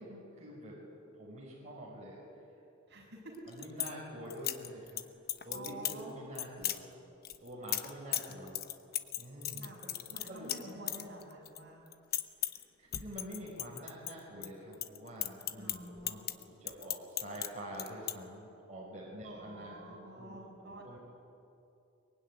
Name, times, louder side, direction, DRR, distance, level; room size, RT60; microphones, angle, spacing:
voice 1, 0.0-2.2 3.5-5.0 5.4-6.9 7.4-8.6 9.2-10.9 12.4-21.0, equal, 35° right, -5 dB, 5.4 m, -47 dB
voice 2, 2.9-3.4 5.5-6.1 9.6-9.8 10.1-11.8 15.5-16.2 19.2-21.0, right 1 dB, 50° right, -1 dB, 7.2 m, -49 dB
sound 1, 3.3-3.9 4.3-5.0 5.3-6.0 6.4-6.8 7.2-11.6 11.9-12.6 12.9-14.5 14.7-17.5 17.7-18.1, left 13 dB, 45° left, 1.0 m, -36 dB
23.5 x 23.0 x 9.9 m, 2.7 s
head